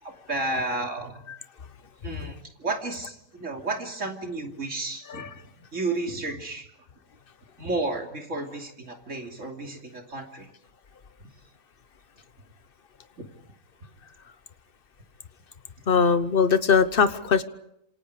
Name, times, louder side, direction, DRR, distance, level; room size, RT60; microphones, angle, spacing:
voice 1, 0.0-1.2 2.0-5.3 5.7-6.7 7.6-10.5 13.2-13.3, right 2 dB, 55° right, 2 dB, 3.3 m, -32 dB
voice 2, 15.9-17.4, left 5 dB, 40° left, 12 dB, 1.2 m, -21 dB
27.0 x 27.0 x 5.0 m, 0.78 s
omnidirectional pair, 1.5 m